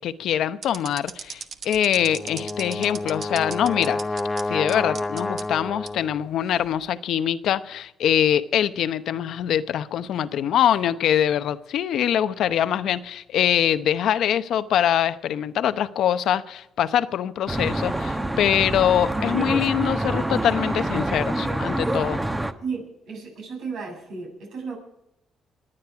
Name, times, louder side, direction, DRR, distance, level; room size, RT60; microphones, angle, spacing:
voice 1, 0.0-4.0 4.5-22.2, left 10 dB, 75° left, 0.8 m, -23 dB
sound 1, 0.6-4.4 4.7-5.4 5.9-6.0 6.6-6.9, right 6 dB, 55° right, 1.2 m, -36 dB
Brass instrument, 2.0-6.2, left 2 dB, 15° left, 0.7 m, -29 dB
Traffic noise roadway noise, 17.5-22.5, right 1 dB, 15° right, 1.1 m, -26 dB
voice 2, 22.6-24.8, right 4 dB, 80° right, 7.8 m, -34 dB
28.0 x 10.0 x 4.8 m
cardioid pair, 90°, 0 cm